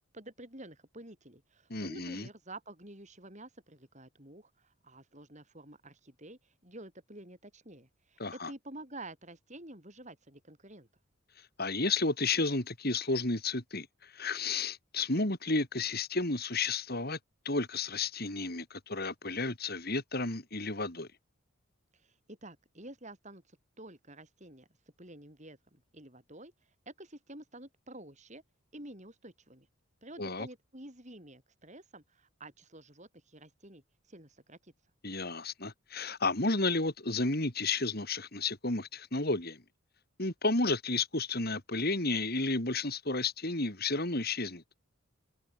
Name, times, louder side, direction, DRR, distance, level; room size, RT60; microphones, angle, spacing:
voice 1, 0.1-10.9 21.9-24.7 25.0-26.5 26.9-28.4 28.7-29.7 30.0-34.7, right 1 dB, 35° right, 7.8 m, -50 dB
voice 2, 1.7-2.3 8.2-8.5 11.6-17.2 17.4-21.1 30.2-30.5 35.0-39.6 40.2-44.6, left 3 dB, 45° left, 3.4 m, -32 dB
open air
head